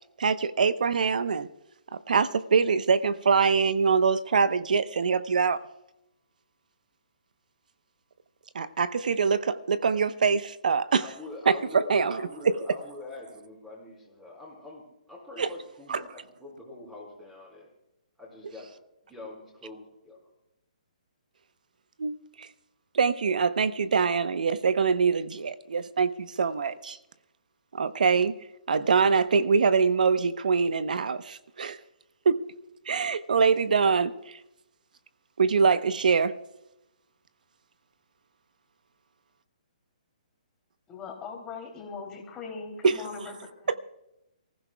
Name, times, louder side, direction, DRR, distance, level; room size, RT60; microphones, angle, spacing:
voice 1, 0.2-1.5 1.9-5.6 8.5-11.0 11.5-12.5 15.4-15.5 15.9-16.0 22.0-22.5 22.9-27.0 27.7-28.3 28.7-31.8 32.2-32.5 32.9-34.4 35.4-36.4 42.8-42.9, right 5 dB, 75° right, 0.9 m, -24 dB
voice 2, 11.0-17.7 18.2-18.7 19.0-20.2, left 2 dB, 5° right, 4.7 m, -44 dB
voice 3, 40.9-43.8, left 4 dB, 15° left, 3.0 m, -40 dB
28.0 x 15.5 x 2.3 m
hypercardioid pair, 160°, 4 cm